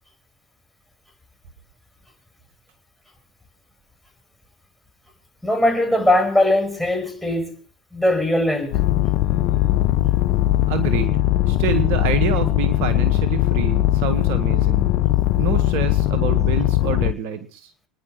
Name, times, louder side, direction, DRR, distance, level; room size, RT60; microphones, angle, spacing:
voice 1, 5.4-7.6 7.9-8.8, left 1 dB, 5° left, 5.4 m, -20 dB
sound 1, 8.7-17.1, left 15 dB, 55° left, 0.7 m, -19 dB
voice 2, 10.7-11.2 11.5-14.9 15.4-17.7, right 7 dB, 55° right, 1.8 m, -27 dB
28.5 x 10.5 x 3.3 m
hypercardioid pair, 85°, 4 cm